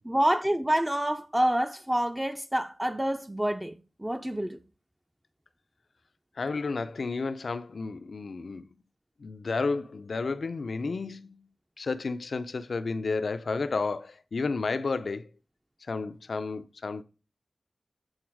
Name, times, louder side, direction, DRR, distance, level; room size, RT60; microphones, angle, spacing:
voice 1, 0.0-4.6, right 1 dB, 15° right, 0.5 m, -27 dB
voice 2, 6.4-8.7 9.2-11.4 11.8-15.3 15.8-17.0, left 4 dB, 80° left, 0.4 m, -31 dB
8.0 x 3.9 x 4.7 m
wide cardioid pair, 60°, 0 cm